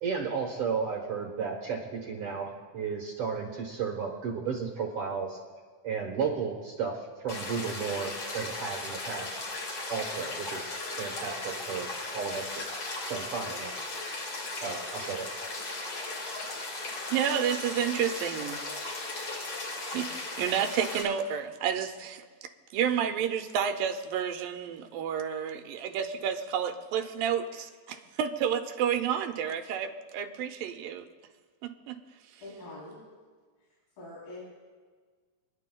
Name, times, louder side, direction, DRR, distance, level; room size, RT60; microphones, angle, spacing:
voice 1, 0.0-5.4 5.8-9.4 9.9-12.6 13.0-13.7 14.6-15.3, right 6 dB, 60° right, 0 dB, 1.5 m, -34 dB
sound 1, 7.3-21.0, left 2 dB, 50° left, 3.2 m, -37 dB
voice 2, 17.1-18.6 19.9-20.1 20.4-22.2 22.7-31.1 31.6-32.0, right 8 dB, 90° right, 6 dB, 2.4 m, -30 dB
voice 3, 32.4-33.1 33.6-34.4, left 2 dB, 90° left, -9 dB, 5.4 m, -45 dB
29.5 x 10.5 x 2.3 m, 1.5 s
omnidirectional pair, 4.0 m